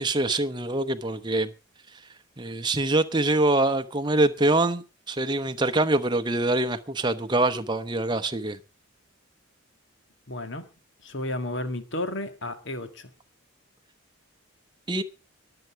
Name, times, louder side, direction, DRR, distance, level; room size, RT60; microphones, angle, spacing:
voice 1, 0.0-1.5 2.4-8.6 14.9-15.0, right 2 dB, 20° right, 0.8 m, -24 dB
voice 2, 10.3-10.7 11.0-13.1, left 1 dB, 55° left, 1.7 m, -32 dB
22.0 x 8.0 x 4.5 m
head